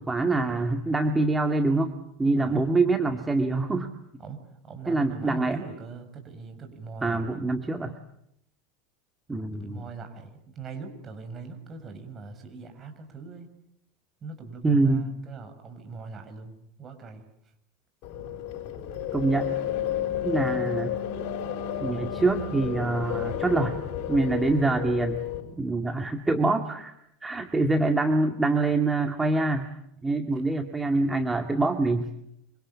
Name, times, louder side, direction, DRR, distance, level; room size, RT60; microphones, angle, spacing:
voice 1, 0.0-1.9 2.2-3.9 4.9-5.6 7.0-7.9 9.3-9.8 14.6-15.1 19.1-19.6 20.2-20.9 21.8-23.8 24.1-25.2 25.6-26.9 27.2-29.7 30.0-32.1, right 3 dB, 15° right, 6 dB, 2.1 m, -25 dB
voice 2, 2.2-2.6 4.2-7.3 9.5-13.5 14.2-17.2 30.3-30.4, right 4 dB, 30° right, 7 dB, 6.3 m, -41 dB
sound 1, 18.0-25.4, left 10 dB, 50° left, 6.9 m, -31 dB
26.5 x 25.0 x 8.6 m, 0.78 s
figure-of-eight pair, 80°, 0 cm